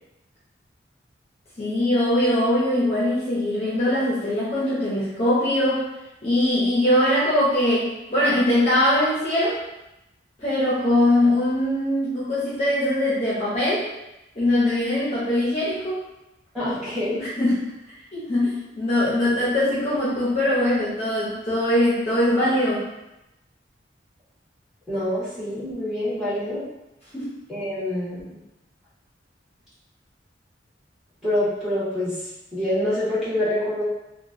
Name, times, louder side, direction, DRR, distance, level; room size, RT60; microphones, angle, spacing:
voice 1, 1.6-5.9 6.2-9.6 10.4-13.9 14.3-16.1 17.2-17.6 18.1-22.8 27.1-27.3, left 1 dB, 35° left, -9 dB, 0.7 m, -22 dB
voice 2, 16.5-17.2 24.9-26.6 27.5-28.2 31.2-32.2 32.5-33.8, left 1 dB, ahead, -12 dB, 1.2 m, -26 dB
2.9 x 2.2 x 2.6 m, 0.94 s
head